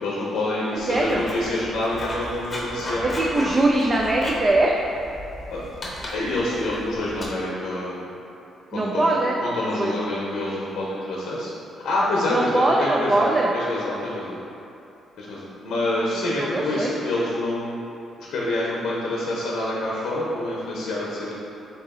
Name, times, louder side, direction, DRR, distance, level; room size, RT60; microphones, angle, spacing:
voice 1, 0.0-3.1 5.5-5.6 6.1-8.1 8.7-11.5 11.8-14.4 15.2-17.7 18.2-21.3, left 1 dB, 80° left, -6 dB, 0.7 m, -27 dB
Writing, 0.8-7.3, equal, 30° left, 0.7 m, -35 dB
voice 2, 0.9-1.2 3.0-4.7 8.7-9.4 9.8-9.9 12.3-13.5 16.1-16.9, right 2 dB, 30° right, -2 dB, 0.3 m, -22 dB
3.8 x 2.9 x 3.6 m, 2.8 s
cardioid pair, 90°, 0 cm